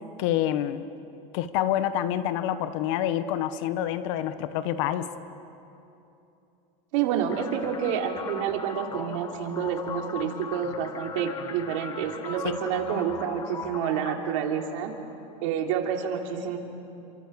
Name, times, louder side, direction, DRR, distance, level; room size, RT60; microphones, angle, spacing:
voice 1, 0.2-0.9 1.3-5.1, left 11 dB, 70° left, 12 dB, 1.4 m, -27 dB
voice 2, 6.9-14.9 15.4-16.6, right 8 dB, 75° right, 2 dB, 3.3 m, -28 dB
sound 1, 7.3-15.3, left 6 dB, 25° left, 1.2 m, -40 dB
29.0 x 25.0 x 7.1 m, 2.9 s
supercardioid pair, 145°, 17 cm